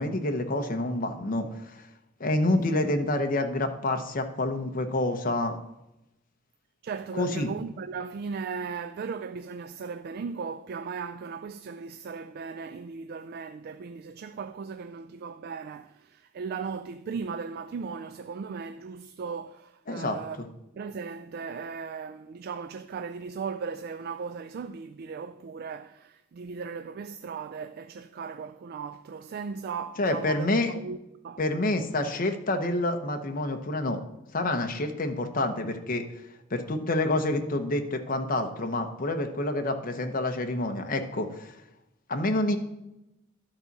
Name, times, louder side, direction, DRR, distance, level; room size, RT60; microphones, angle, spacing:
voice 1, 0.0-1.8 2.2-5.5 7.1-7.5 19.9-20.5 30.0-30.7 31.4-34.0 34.3-36.0 36.5-41.5 42.1-42.6, left 2 dB, 45° left, 0.9 m, -28 dB
voice 2, 6.8-20.4 20.7-31.0 31.2-31.4 32.1-32.2 37.1-37.3, right 5 dB, 50° right, 0.3 m, -37 dB
12.0 x 4.1 x 5.9 m
head